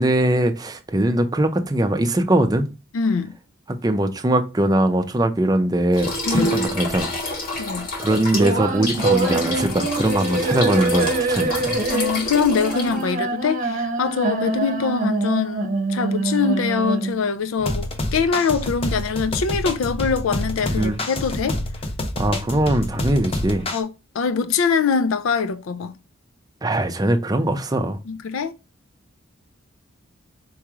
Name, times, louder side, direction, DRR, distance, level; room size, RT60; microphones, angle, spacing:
voice 1, 0.0-2.7 3.7-7.1 8.0-11.8 20.6-21.0 22.2-23.7 26.6-28.0, right 1 dB, 20° right, 0.5 m, -21 dB
voice 2, 2.9-3.3 6.3-6.5 7.6-7.9 11.9-21.6 23.7-23.9 24.1-25.9 28.1-28.5, left 5 dB, 75° left, 0.4 m, -23 dB
sound 1, 5.9-13.1, left 1 dB, 45° left, 1.6 m, -28 dB
sound 2, 8.3-17.3, right 3 dB, 40° right, 0.8 m, -24 dB
sound 3, 17.6-23.8, left 1 dB, 30° left, 0.7 m, -27 dB
4.7 x 3.1 x 3.5 m
head